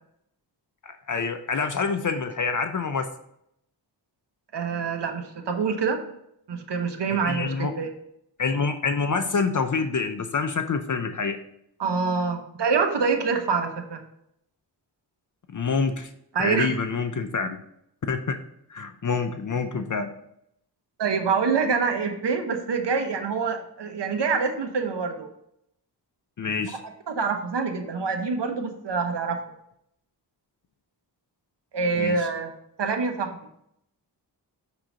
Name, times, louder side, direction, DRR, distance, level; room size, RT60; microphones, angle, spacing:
voice 1, 0.8-3.0 7.1-7.7 8.4-11.4 15.5-16.1 16.4-17.6 18.1-18.4 18.7-20.1 26.4-26.8 32.0-32.2, left 5 dB, 45° left, 8 dB, 0.6 m, -27 dB
voice 2, 4.5-6.1 6.5-7.9 11.8-14.0 16.3-16.7 21.0-25.3 27.1-29.4 31.7-32.5 32.8-33.4, right 5 dB, 70° right, 5 dB, 0.9 m, -26 dB
6.0 x 3.8 x 5.0 m, 0.74 s
wide cardioid pair, 75°, 43 cm